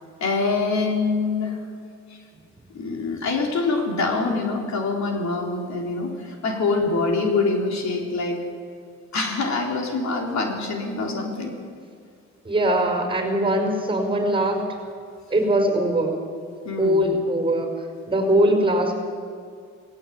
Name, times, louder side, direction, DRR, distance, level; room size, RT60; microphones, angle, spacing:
voice 1, 0.2-1.6 2.1-2.2 2.7-8.4 9.1-11.5 16.6-17.1, left 3 dB, 65° left, 1 dB, 3.7 m, -25 dB
voice 2, 12.4-14.7 15.3-16.2 16.8-17.7 18.1-18.9, right 1 dB, 15° right, 4 dB, 5.1 m, -21 dB
18.0 x 18.0 x 8.3 m, 2.2 s
cardioid pair, 90°, 30 cm